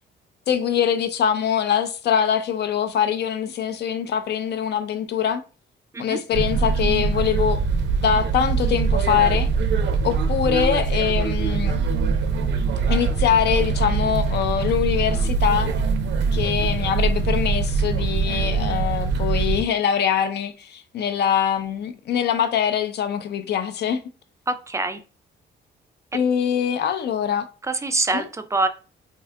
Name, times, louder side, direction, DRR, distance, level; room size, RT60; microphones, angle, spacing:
voice 1, 0.5-5.4 6.0-7.6 8.0-9.5 10.0-11.8 12.9-15.7 16.3-24.0 26.1-27.5 28.1-28.3, left 8 dB, 60° left, 0.5 m, -23 dB
sound 1, 6.3-19.6, right 4 dB, 65° right, 0.5 m, -23 dB
voice 2, 24.5-25.0 27.7-28.7, right 3 dB, 15° right, 0.3 m, -24 dB
2.7 x 2.3 x 3.3 m
cardioid pair, 90°, 20 cm